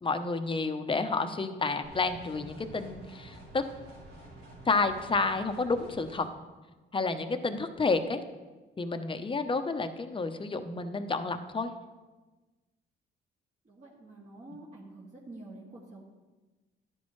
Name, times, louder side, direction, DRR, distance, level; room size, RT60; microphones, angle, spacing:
voice 1, 0.0-3.6 4.7-6.3 6.9-8.2 8.8-11.7, left 3 dB, 25° left, 8 dB, 0.9 m, -30 dB
sound 1, 1.8-6.2, right 1 dB, 85° right, 4.1 m, -49 dB
voice 2, 13.6-16.0, right 2 dB, 40° right, -6 dB, 2.4 m, -48 dB
13.0 x 11.0 x 3.2 m, 1.2 s
cardioid pair, 90°, 20 cm